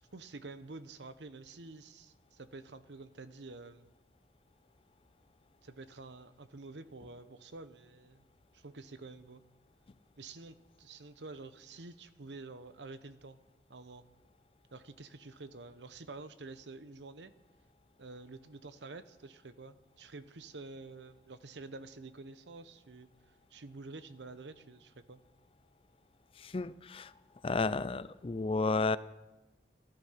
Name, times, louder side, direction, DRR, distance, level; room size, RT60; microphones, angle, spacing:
voice 1, 0.1-3.9 5.6-8.2 8.5-9.4 10.2-13.4 13.7-14.0 14.7-17.3 18.0-25.2, right 3 dB, 90° right, 12 dB, 0.9 m, -49 dB
voice 2, 26.4-27.1 27.4-29.0, left 3 dB, 30° left, 16 dB, 0.4 m, -32 dB
14.0 x 13.0 x 5.8 m, 1.0 s
head